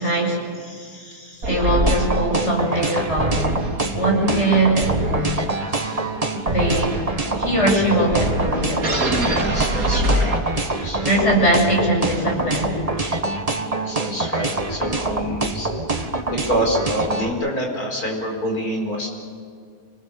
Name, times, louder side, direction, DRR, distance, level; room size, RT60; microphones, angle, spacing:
voice 1, 0.0-0.5 1.5-3.4 3.9-5.3 6.5-7.0 7.4-9.0 9.4-9.6 11.0-13.1, right 1 dB, 45° left, -1 dB, 7.1 m, -21 dB
voice 2, 0.6-1.5 5.7-6.1 7.2-7.4 9.1-11.3 13.7-15.7 16.2-19.1, equal, 75° left, 1 dB, 5.2 m, -28 dB
sound 1, 1.4-10.9, right 1 dB, 70° right, 2.8 m, -26 dB
sound 2, 1.9-17.3, right 2 dB, 25° right, 1.7 m, -25 dB
27.0 x 20.0 x 7.0 m, 2.1 s
omnidirectional pair, 1.6 m